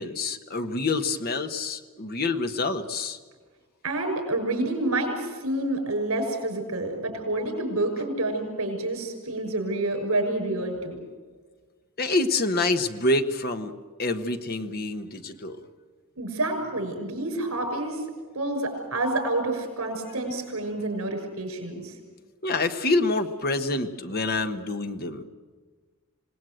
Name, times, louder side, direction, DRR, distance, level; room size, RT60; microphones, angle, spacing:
voice 1, 0.0-3.2 12.0-13.7 14.0-15.6 22.4-25.2, left 2 dB, 45° left, 7 dB, 1.4 m, -27 dB
voice 2, 3.8-11.0 16.2-18.0 18.3-21.9, right 2 dB, 75° right, 5 dB, 6.5 m, -28 dB
26.5 x 19.0 x 7.9 m, 1.5 s
head